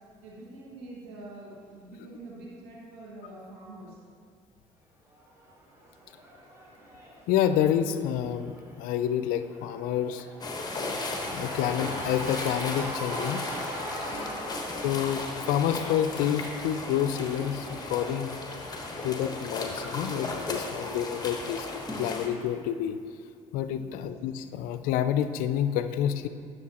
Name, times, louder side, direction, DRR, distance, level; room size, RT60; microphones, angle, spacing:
voice 1, 0.2-4.0 14.1-14.4 23.7-24.0, right 2 dB, 90° right, -5 dB, 1.8 m, -45 dB
Cheering / Crowd, 5.1-20.4, right 1 dB, 20° right, 1.6 m, -43 dB
voice 2, 7.3-10.3 11.3-13.4 14.8-18.4 19.0-21.7 22.0-23.0 23.5-26.3, left 10 dB, 75° left, 11 dB, 0.4 m, -28 dB
sound 1, 10.4-22.3, left 2 dB, 25° left, 1.2 m, -35 dB
9.5 x 6.5 x 2.9 m, 2.2 s
supercardioid pair, 75°, 15 cm